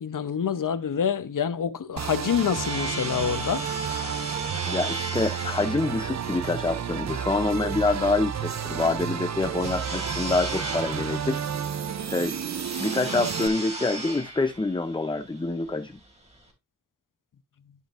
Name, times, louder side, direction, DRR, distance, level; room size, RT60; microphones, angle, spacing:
voice 1, 0.0-3.7, left 7 dB, 90° left, 0.8 m, -27 dB
sound 1, 1.9-16.5, right 2 dB, 20° right, 2.9 m, -37 dB
sound 2, 2.0-13.5, right 7 dB, 60° right, 0.6 m, -31 dB
voice 2, 4.7-11.8 12.1-12.4 12.8-15.9, left 3 dB, 15° left, 0.6 m, -26 dB
12.5 x 5.3 x 2.5 m
wide cardioid pair, 90°, 31 cm